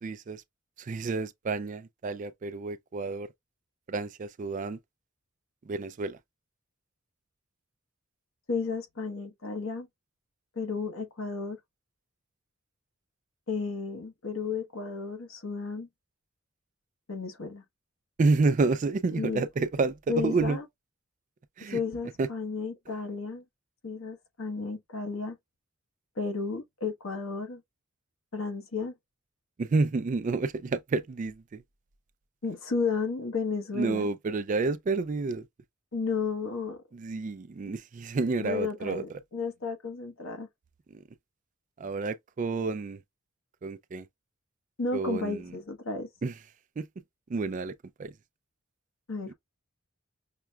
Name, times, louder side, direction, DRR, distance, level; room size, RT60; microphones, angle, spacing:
voice 1, 0.0-0.4 0.8-3.3 3.9-4.8 5.6-6.2 18.2-20.6 21.6-21.8 22.2-22.3 29.6-31.6 33.7-35.5 36.9-39.0 40.9-41.0 41.8-43.0 43.6-44.1 44.9-45.5 46.2-46.3 46.8-46.9 47.3-47.7 48.0-48.1, right 3 dB, 35° right, 0.3 m, -29 dB
voice 2, 8.5-9.9 10.6-11.6 13.5-15.9 17.1-17.6 19.2-19.4 20.1-20.6 21.7-23.4 23.8-25.4 26.2-27.6 28.3-28.9 32.4-34.1 35.9-36.8 38.4-40.5 44.8-46.1 49.1-49.3, left 4 dB, 75° left, 1.0 m, -33 dB
5.9 x 2.1 x 2.2 m
head